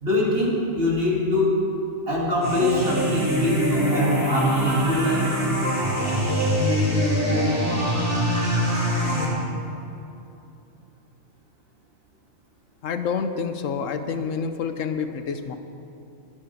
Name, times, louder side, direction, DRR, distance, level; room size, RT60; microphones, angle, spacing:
voice 1, 0.0-1.6 2.1-5.4, left 1 dB, 50° right, -4 dB, 2.7 m, -23 dB
sound 1, 2.4-9.2, equal, 10° right, 2.7 m, -23 dB
voice 2, 12.8-15.6, left 6 dB, 80° left, 8 dB, 1.1 m, -28 dB
22.5 x 7.8 x 4.5 m, 2.7 s
omnidirectional pair, 1.3 m